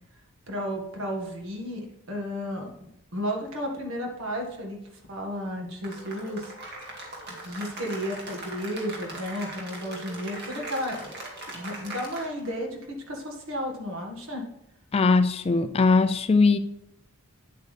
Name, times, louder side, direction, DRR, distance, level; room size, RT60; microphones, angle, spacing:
voice 1, 0.5-4.8 5.1-6.5 7.4-11.1 11.5-14.5, equal, 70° right, 1.7 m, -33 dB
Cheering / Applause, 5.8-12.6, right 2 dB, 50° right, 2.1 m, -40 dB
voice 2, 14.9-16.6, left 4 dB, 25° left, 0.3 m, -20 dB
9.4 x 8.1 x 3.3 m
head